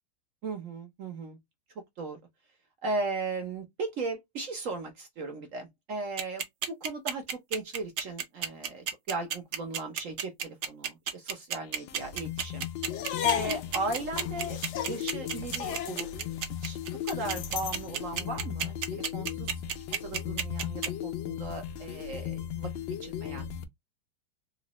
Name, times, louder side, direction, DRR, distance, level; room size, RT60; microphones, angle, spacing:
voice 1, 0.4-1.4 2.0-2.2 2.8-12.7 13.2-16.1 16.6-16.8 17.0-19.5 20.0-22.7 23.0-23.5, right 3 dB, 55° right, 0.9 m, -37 dB
sound 1, 6.2-20.9, right 8 dB, 90° right, 0.6 m, -31 dB
sound 2, 11.6-23.6, left 9 dB, 85° left, 1.4 m, -37 dB
sound 3, 12.9-17.9, left 11 dB, 70° left, 1.1 m, -35 dB
3.9 x 2.2 x 2.9 m
omnidirectional pair, 2.0 m